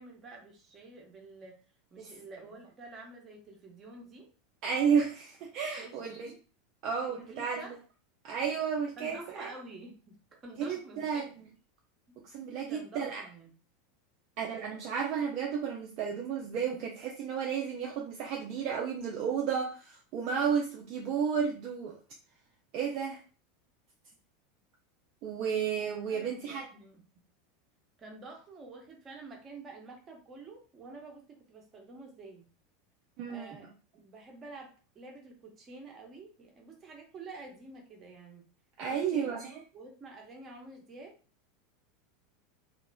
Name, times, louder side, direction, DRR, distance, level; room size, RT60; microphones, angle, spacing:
voice 1, 0.0-1.5 1.9-4.3 5.7-6.4 7.1-7.8 9.0-10.2 10.4-11.2 12.1-12.2 12.7-13.5 26.1-27.0 28.0-32.5 33.3-38.4 38.9-39.4 39.7-41.1, right 3 dB, 25° right, 1 dB, 0.9 m, -49 dB
voice 2, 4.6-6.3 6.8-7.6 8.2-9.5 10.6-11.2 12.3-13.2 14.4-21.9 22.7-23.2 25.2-26.7 33.2-33.6 38.8-39.6, right 7 dB, 45° right, -1 dB, 0.5 m, -32 dB
2.9 x 2.5 x 2.2 m, 0.37 s
figure-of-eight pair, 80°, 0 cm